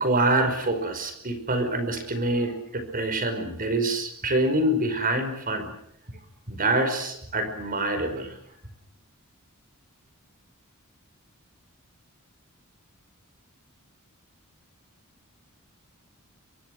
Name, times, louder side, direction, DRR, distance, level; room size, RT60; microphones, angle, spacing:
voice 1, 0.0-5.7 6.5-8.3, right 2 dB, 40° right, 8 dB, 5.2 m, -26 dB
28.5 x 24.5 x 6.4 m, 0.69 s
head